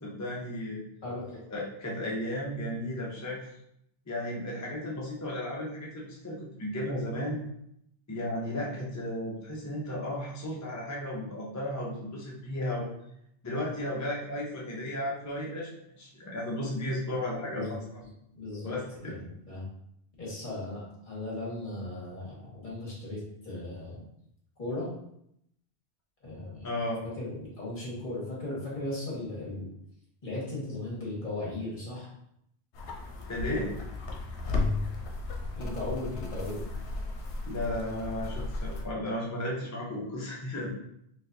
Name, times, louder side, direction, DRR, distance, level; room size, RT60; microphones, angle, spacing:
voice 1, 0.0-0.8 1.5-3.4 4.1-7.4 8.1-12.9 13.4-15.7 16.0-18.0 18.6-19.1 26.6-27.0 33.3-33.7 37.5-40.7, left 1 dB, 25° left, -4 dB, 0.4 m, -34 dB
voice 2, 1.0-1.4 17.5-17.7 18.3-18.7 19.0-19.6 20.2-24.0 24.6-24.9 26.2-26.7 27.2-29.7 30.2-32.1 35.6-36.7, left 2 dB, 45° left, -6 dB, 1.6 m, -37 dB
sound 1, 32.7-38.9, left 3 dB, 80° left, 0.9 m, -34 dB
4.1 x 2.5 x 2.6 m, 0.74 s
omnidirectional pair, 1.1 m